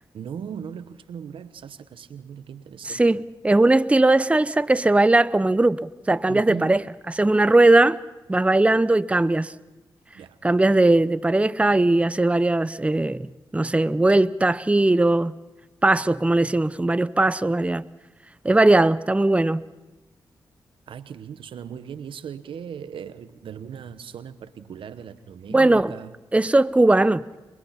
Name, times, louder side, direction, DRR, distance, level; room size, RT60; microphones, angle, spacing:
voice 1, 0.1-3.2 6.3-6.8 10.1-10.4 20.9-26.1, right 8 dB, 80° right, 1.0 m, -38 dB
voice 2, 2.8-6.8 7.1-8.0 8.3-9.5 10.4-15.3 15.8-17.8 18.4-19.6 25.5-25.9 26.3-27.2, right 2 dB, 15° right, 0.6 m, -19 dB
23.5 x 21.5 x 5.8 m
cardioid pair, 50°, 9 cm